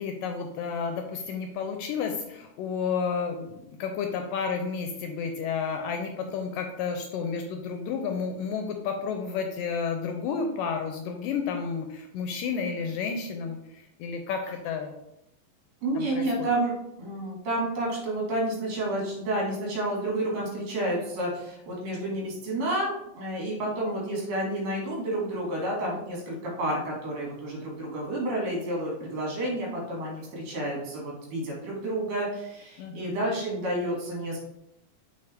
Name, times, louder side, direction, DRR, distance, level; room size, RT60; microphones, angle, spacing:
voice 1, 0.0-14.9 16.0-16.5 32.8-33.2, left 5 dB, 80° left, 5 dB, 2.0 m, -31 dB
voice 2, 15.8-16.7 17.0-34.4, right 1 dB, 70° right, -3 dB, 3.5 m, -30 dB
7.0 x 4.3 x 3.3 m, 0.82 s
omnidirectional pair, 4.2 m